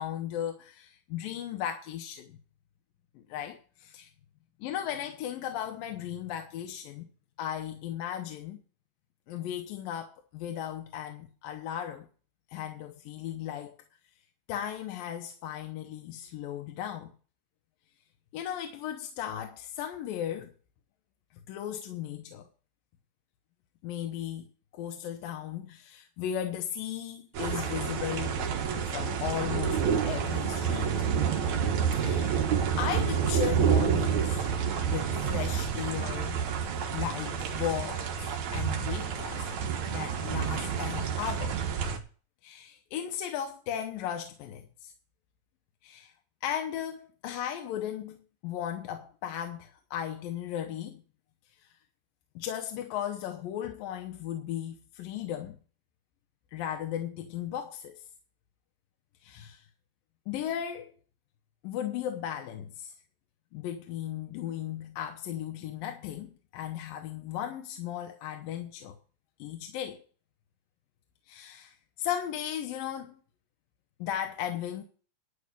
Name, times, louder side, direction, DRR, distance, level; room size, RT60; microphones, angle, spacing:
voice 1, 0.0-2.4 3.2-4.1 4.6-7.1 7.4-8.6 9.3-12.1 12.5-13.8 14.5-17.1 18.3-20.5 21.5-22.5 23.8-24.4 24.7-28.4 28.9-31.1 32.0-32.4 32.8-34.5 34.8-36.4 36.9-39.5 39.9-41.6 42.4-44.9 45.8-46.1 46.4-48.2 48.4-51.0 52.4-55.6 56.5-58.0 59.2-59.6 60.3-60.9 61.6-62.9 63.5-69.0 69.4-70.0 71.3-73.2 74.0-74.8, left 10 dB, 75° left, 2.5 m, -36 dB
sound 1, 27.3-42.0, right 7 dB, 60° right, 2.4 m, -29 dB
11.5 x 5.4 x 8.5 m
omnidirectional pair, 4.4 m